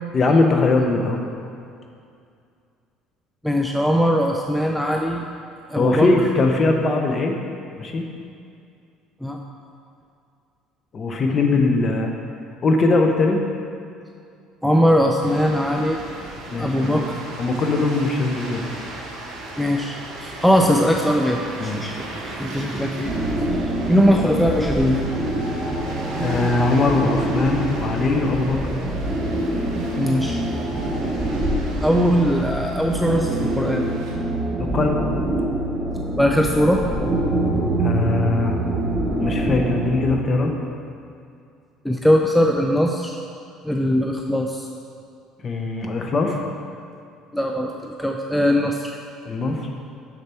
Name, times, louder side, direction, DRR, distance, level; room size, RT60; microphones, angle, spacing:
voice 1, 0.1-1.2 5.8-7.4 7.8-8.0 10.9-12.1 12.6-13.4 16.5-17.0 17.4-18.7 21.6-22.0 26.2-28.6 34.6-35.0 37.8-38.6 39.2-40.5 45.4-46.4 49.2-49.7, left 3 dB, 30° left, 3 dB, 0.8 m, -21 dB
voice 2, 3.4-5.3 5.7-6.1 9.2-9.4 14.6-16.0 16.6-17.2 19.6-22.1 22.4-23.1 23.5-23.6 23.9-25.0 30.0-30.4 31.8-33.9 36.2-36.8 41.8-43.2 43.6-44.7 47.3-49.0, equal, ahead, 1 dB, 0.4 m, -20 dB
sound 1, 15.2-34.1, right 2 dB, 65° right, 1.9 m, -37 dB
sound 2, 23.0-40.0, right 1 dB, 15° right, 1.0 m, -25 dB
6.8 x 6.6 x 4.3 m, 2.4 s
cardioid pair, 140°, 0 cm